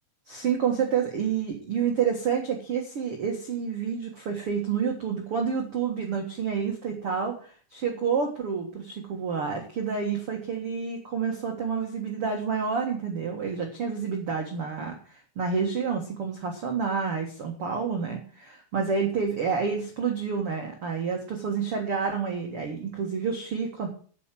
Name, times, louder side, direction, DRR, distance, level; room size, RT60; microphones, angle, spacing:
voice 1, 0.3-23.9, right 6 dB, 85° right, 2 dB, 1.2 m, -29 dB
9.5 x 8.3 x 7.6 m, 0.43 s
omnidirectional pair, 5.4 m